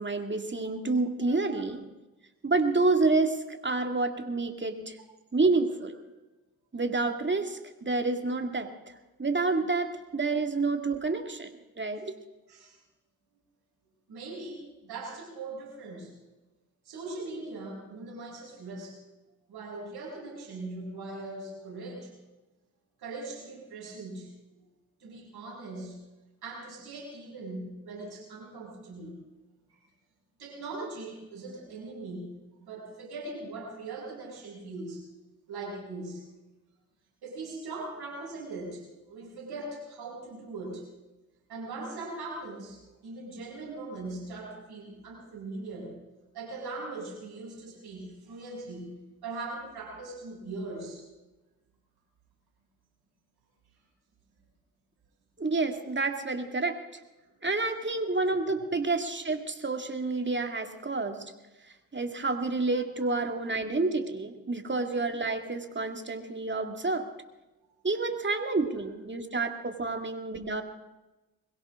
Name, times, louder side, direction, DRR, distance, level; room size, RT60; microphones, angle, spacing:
voice 1, 0.0-1.9 2.4-5.0 5.3-6.0 6.7-8.9 9.2-12.1 55.4-56.8 57.4-61.3 61.9-67.1 67.8-70.6, right 3 dB, 30° right, 6 dB, 2.3 m, -29 dB
voice 2, 12.4-12.8 14.1-16.1 16.8-19.0 19.5-22.1 23.0-24.3 25.0-26.0 26.4-29.2 30.4-35.0 35.5-36.2 37.2-40.9 41.5-46.0 46.3-51.0 58.5-58.6 63.3-63.4 69.8-69.9, right 2 dB, 70° right, -1 dB, 6.8 m, -40 dB
22.0 x 17.0 x 3.8 m, 1.1 s
hypercardioid pair, 40°, 39 cm